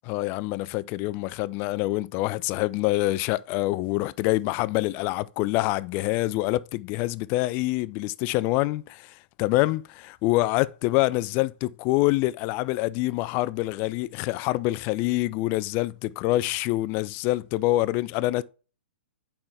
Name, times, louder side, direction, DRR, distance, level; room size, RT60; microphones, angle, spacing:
voice 1, 0.1-18.4, left 18 dB, 30° left, 0.3 m, -26 dB
8.7 x 5.6 x 3.4 m
hypercardioid pair, 125°, 6 cm